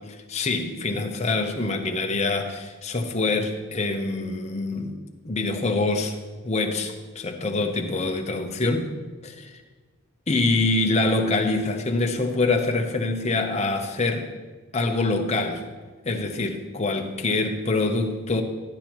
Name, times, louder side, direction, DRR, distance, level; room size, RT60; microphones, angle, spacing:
voice 1, 0.3-5.0 5.2-6.2 6.4-8.9 9.2-9.6 10.3-14.3 14.7-15.6 16.0-18.4, left 2 dB, 30° left, 4 dB, 0.8 m, -25 dB
11.5 x 11.5 x 3.0 m, 1.4 s
head